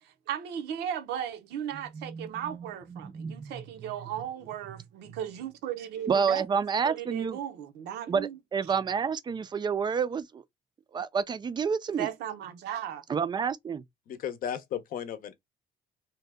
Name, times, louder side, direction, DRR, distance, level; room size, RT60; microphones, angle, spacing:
voice 1, 0.0-6.4 6.8-8.4 12.0-13.0, right 10 dB, 80° right, 0.7 m, -36 dB
voice 2, 1.9-2.6 2.9-3.6 6.1-7.4 8.1-10.4 10.9-12.1 13.1-13.8, right 6 dB, 25° right, 0.4 m, -29 dB
voice 3, 14.1-15.4, left 9 dB, 55° left, 0.6 m, -35 dB
2.8 x 2.2 x 3.3 m
cardioid pair, 110°, 17 cm